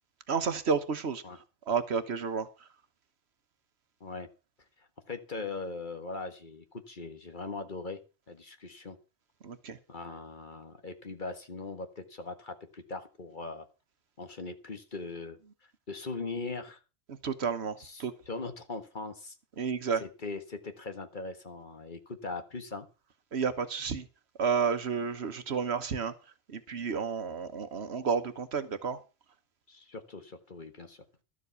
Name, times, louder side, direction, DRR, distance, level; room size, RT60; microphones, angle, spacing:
voice 1, 0.3-1.2 1.7-2.5 9.4-9.8 17.2-18.1 19.6-20.0 23.3-24.1 24.4-26.1 26.5-29.0, right 6 dB, 70° right, 1.4 m, -31 dB
voice 2, 5.1-8.0 8.3-9.0 9.9-13.6 14.2-15.4 15.9-16.8 17.8-19.3 20.0-22.9 29.7-31.0, left 3 dB, 45° left, 1.6 m, -40 dB
12.5 x 7.6 x 6.8 m
omnidirectional pair, 1.1 m